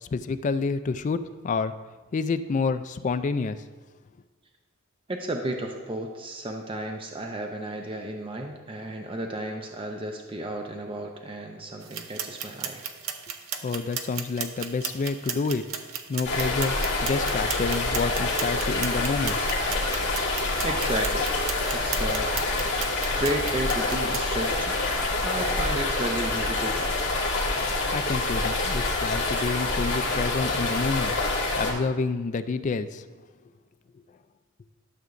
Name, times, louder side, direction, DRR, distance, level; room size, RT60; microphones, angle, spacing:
voice 1, 0.0-1.7 2.1-3.6 13.6-15.7 16.1-19.4 27.9-31.1 31.6-33.0, left 4 dB, 35° left, 11 dB, 0.3 m, -28 dB
voice 2, 5.1-12.8 20.6-21.3 21.7-22.3 23.2-24.7 25.2-27.0, right 1 dB, 25° right, 2 dB, 0.6 m, -33 dB
sound 1, 11.8-24.2, right 7 dB, 80° right, 0.7 m, -36 dB
sound 2, 16.2-31.7, left 2 dB, 65° left, 2.0 m, -26 dB
12.5 x 6.7 x 2.6 m, 1.4 s
head